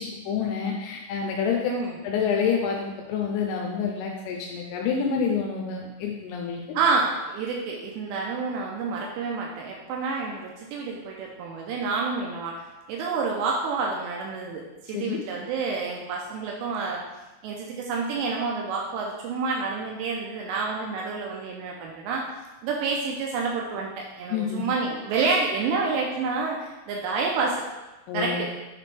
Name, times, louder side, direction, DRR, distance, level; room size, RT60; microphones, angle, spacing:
voice 1, 0.0-1.7 2.0-6.6 14.9-15.2 24.3-24.6 28.1-28.5, left 6 dB, 85° left, 0 dB, 3.0 m, -28 dB
voice 2, 6.7-12.6 12.9-17.0 17.4-22.2 22.6-27.6 28.1-28.5, right 4 dB, 85° right, -1 dB, 2.5 m, -28 dB
8.9 x 3.4 x 3.3 m, 1.1 s
omnidirectional pair, 5.6 m